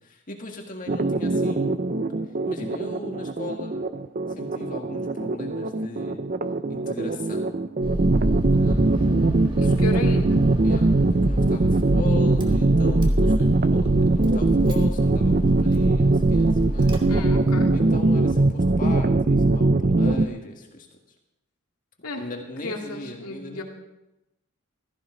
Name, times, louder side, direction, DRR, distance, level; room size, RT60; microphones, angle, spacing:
voice 1, 0.0-1.7 2.4-3.8 4.3-6.2 6.7-7.6 8.5-9.2 9.6-10.0 10.6-16.9 17.7-20.9 22.2-23.6, left 2 dB, 35° left, 1 dB, 1.9 m, -38 dB
sound 1, 0.9-20.3, right 2 dB, 40° right, 0.5 m, -21 dB
Car / Engine starting, 7.8-17.9, equal, 20° right, 1.6 m, -28 dB
voice 2, 9.6-10.4 17.1-17.7 22.0-22.2 22.6-23.6, left 2 dB, 85° left, 2 dB, 2.1 m, -33 dB
15.5 x 14.5 x 3.9 m, 0.94 s
head